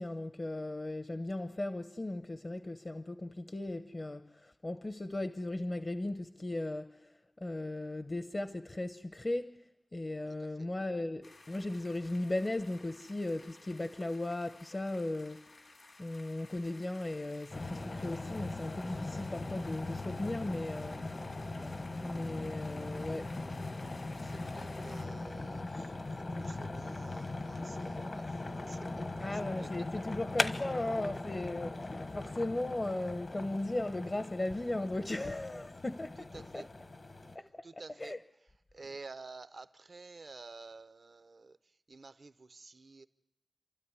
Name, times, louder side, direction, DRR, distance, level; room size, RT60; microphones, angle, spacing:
voice 1, 0.0-7.1 7.4-9.5 9.9-15.5 16.0-21.0 22.0-23.3 29.2-36.7 37.3-37.7 38.0-38.2 38.8-38.9, left 2 dB, 45° left, 0.9 m, -37 dB
sound 1, 11.2-25.0, left 2 dB, 80° left, 3.8 m, -57 dB
sound 2, 17.5-37.4, left 2 dB, 60° left, 1.4 m, -40 dB
voice 2, 23.8-29.3 29.6-29.7 35.2-35.3 36.3-36.7 37.6-38.1 38.7-41.6 41.9-43.1, right 3 dB, 75° right, 0.8 m, -51 dB
28.5 x 13.0 x 9.8 m
cardioid pair, 45°, 0 cm